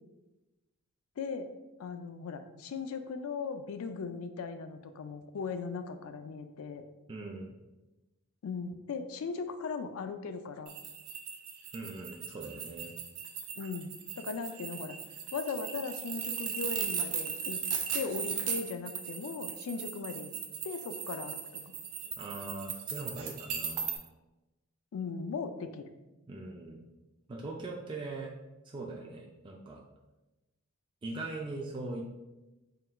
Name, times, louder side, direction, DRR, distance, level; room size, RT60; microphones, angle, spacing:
voice 1, 1.2-1.5 1.8-6.8 8.4-10.7 13.6-15.0 15.3-17.6 17.9-20.3 20.6-21.8 24.9-25.9, left 5 dB, 70° left, 8 dB, 0.4 m, -38 dB
voice 2, 7.1-7.5 11.7-12.9 22.2-23.8 26.3-26.8 27.3-28.3 28.6-29.8 31.0-32.0, right 2 dB, 20° right, -1 dB, 0.3 m, -41 dB
sound 1, 10.7-24.0, right 7 dB, 85° right, 0.6 m, -37 dB
3.8 x 2.2 x 4.2 m, 1.0 s
head